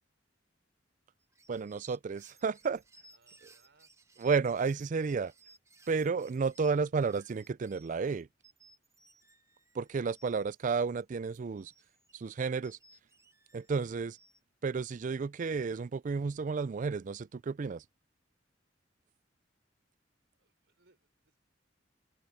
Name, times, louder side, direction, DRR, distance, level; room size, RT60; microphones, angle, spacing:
sound 1, 1.2-10.8 11.3-14.4, right 2 dB, 15° right, 1.1 m, -62 dB
voice 1, 1.5-2.8 4.2-5.3 5.9-8.3 9.8-11.7 12.1-12.8 13.5-14.2 14.6-17.8, right 5 dB, 45° right, 0.4 m, -32 dB
voice 2, 3.1-3.9 20.3-21.4, right 3 dB, 70° right, 4.5 m, -69 dB
open air
head